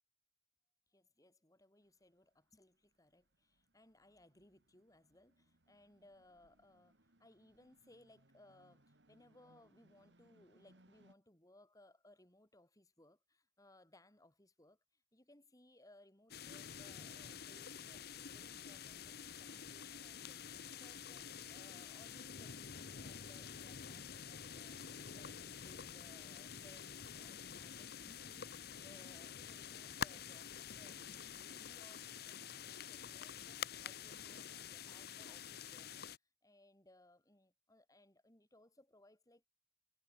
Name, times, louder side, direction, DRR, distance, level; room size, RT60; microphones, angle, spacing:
voice 1, 0.9-36.1 36.4-39.5, left 1 dB, 20° left, 3.5 m, -66 dB
sound 1, 1.8-11.1, right 1 dB, 80° right, 3.3 m, -72 dB
sound 2, 16.3-36.2, left 7 dB, 60° left, 1.0 m, -48 dB
head